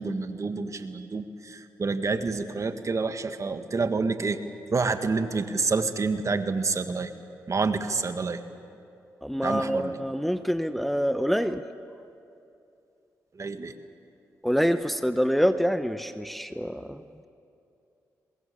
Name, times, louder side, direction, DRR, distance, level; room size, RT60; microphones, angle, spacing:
voice 1, 0.0-4.4 4.7-7.1 7.5-8.4 9.4-10.0 13.4-13.7, right 4 dB, 45° right, 9 dB, 1.8 m, -28 dB
voice 2, 9.2-11.6 14.4-17.0, equal, ahead, 10 dB, 1.0 m, -26 dB
24.0 x 20.5 x 8.7 m, 2.6 s
hypercardioid pair, 40°, 8 cm